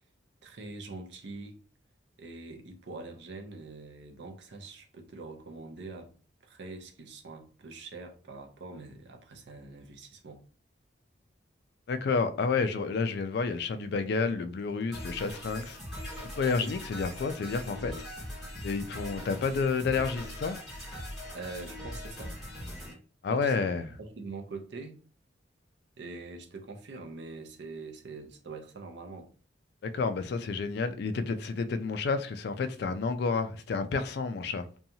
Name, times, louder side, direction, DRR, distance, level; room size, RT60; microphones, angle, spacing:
voice 1, 0.4-1.6 2.2-6.1 6.4-10.4 21.3-22.4 23.3-25.0 26.0-29.3, right 3 dB, 65° right, 0.5 m, -44 dB
voice 2, 11.9-15.8 16.4-18.0 18.6-20.6 23.2-23.9 29.8-34.7, left 4 dB, 55° left, 0.3 m, -30 dB
sound 1, 14.9-22.9, left 1 dB, ahead, 1.0 m, -41 dB
2.7 x 2.3 x 2.7 m
head